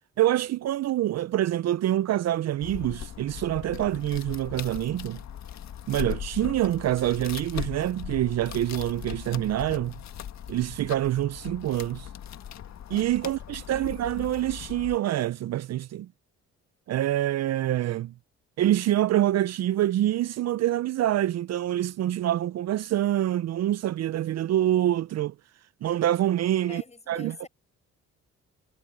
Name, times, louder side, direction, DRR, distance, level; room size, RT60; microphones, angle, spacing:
voice 1, 0.2-5.2 5.9-10.0 10.5-12.1 12.9-16.1 16.9-18.1 18.6-25.3 25.8-26.8 27.1-27.5, right 13 dB, 60° right, 0.5 m, -26 dB
sound 1, 2.6-15.0, left 10 dB, 65° left, 1.7 m, -39 dB
voice 2, 26.6-27.5, left 3 dB, 20° left, 7.8 m, -45 dB
cardioid pair, 90°, 30 cm